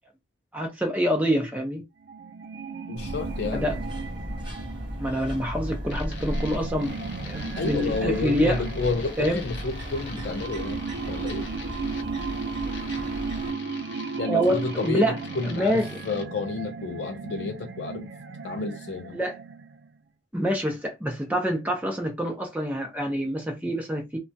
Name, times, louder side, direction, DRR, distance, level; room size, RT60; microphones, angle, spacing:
voice 1, 0.5-1.8 3.5-3.8 5.0-6.9 7.2-8.6 9.2-9.4 14.2-15.2 15.4-16.0 19.1-19.4 20.3-24.2, equal, 10° right, 0.6 m, -26 dB
sound 1, 2.0-20.0, right 5 dB, 70° right, 0.4 m, -36 dB
voice 2, 2.9-3.7 7.6-11.5 14.2-15.8 16.1-18.1 18.4-19.2, left 3 dB, 60° left, 0.4 m, -30 dB
sound 2, 3.0-13.5, equal, 25° right, 1.0 m, -35 dB
sound 3, 5.9-16.3, left 4 dB, 85° left, 0.8 m, -43 dB
2.9 x 2.2 x 2.7 m
head